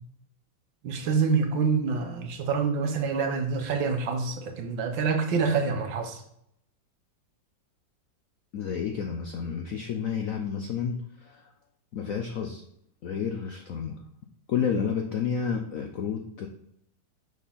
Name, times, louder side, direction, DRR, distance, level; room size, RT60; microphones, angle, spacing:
voice 1, 0.8-6.2, right 5 dB, 75° right, 4 dB, 1.7 m, -26 dB
voice 2, 8.5-11.5 11.9-12.6 13.0-14.0 14.5-16.5, left 7 dB, 75° left, 3 dB, 0.7 m, -30 dB
6.1 x 4.2 x 5.7 m, 0.73 s
omnidirectional pair, 2.2 m